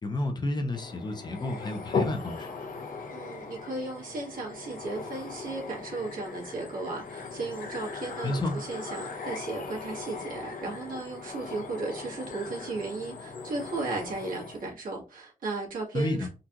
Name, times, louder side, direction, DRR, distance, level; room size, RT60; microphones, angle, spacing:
voice 1, 0.0-2.5 8.2-8.6 15.9-16.3, left 1 dB, 30° left, 0.6 m, -30 dB
sound 1, 0.7-14.7, left 4 dB, 75° left, 0.7 m, -38 dB
voice 2, 3.1-16.3, right 3 dB, 80° right, 1.5 m, -35 dB
3.7 x 2.3 x 2.8 m
wide cardioid pair, 165°, 14 cm